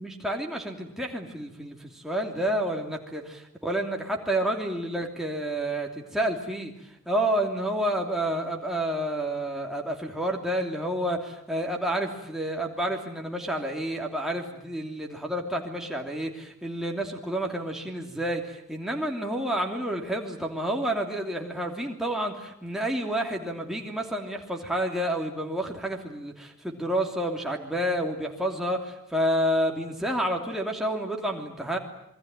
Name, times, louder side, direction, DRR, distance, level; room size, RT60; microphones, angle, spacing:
voice 1, 0.0-6.7 7.1-31.8, right 1 dB, ahead, 1 dB, 3.0 m, -29 dB
27.0 x 22.0 x 9.1 m, 0.75 s
head